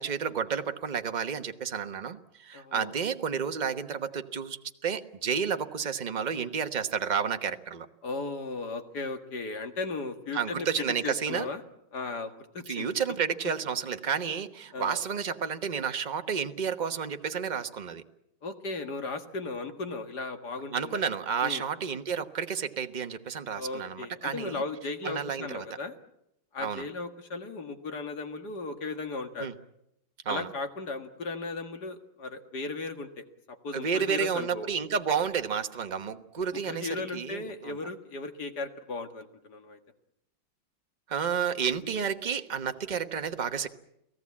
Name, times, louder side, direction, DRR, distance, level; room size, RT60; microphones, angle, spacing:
voice 1, 0.0-7.9 10.3-11.5 12.7-18.0 20.7-24.6 25.0-25.6 26.6-26.8 29.4-29.5 30.2-30.5 33.7-37.8 41.1-43.7, right 7 dB, 30° right, 7 dB, 0.9 m, -31 dB
voice 2, 2.5-2.9 8.0-11.6 11.9-12.9 14.7-15.0 18.4-21.0 21.4-21.7 23.5-26.0 26.5-29.5 30.3-34.7 36.7-39.8, left 3 dB, 55° left, 7 dB, 2.3 m, -36 dB
30.0 x 18.0 x 8.6 m, 0.82 s
omnidirectional pair, 2.2 m